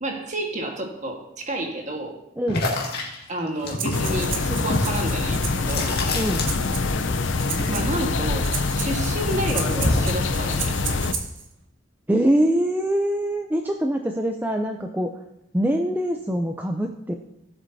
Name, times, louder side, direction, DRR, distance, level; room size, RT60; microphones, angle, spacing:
voice 1, 0.0-2.2 3.3-5.9 7.7-10.7, right 1 dB, 40° right, 2 dB, 1.5 m, -30 dB
voice 2, 2.4-2.7 6.1-6.5 12.1-15.1 15.5-17.1, right 1 dB, 10° right, 3 dB, 0.4 m, -23 dB
sound 1, 2.5-7.0 7.2-8.9 9.2-10.2, left 2 dB, 55° left, 2.0 m, -28 dB
Breathing, 3.7-11.5, right 6 dB, 75° right, 1.3 m, -35 dB
sound 2, 3.9-11.1, left 3 dB, 70° left, 0.6 m, -25 dB
17.5 x 7.8 x 2.7 m, 0.83 s
head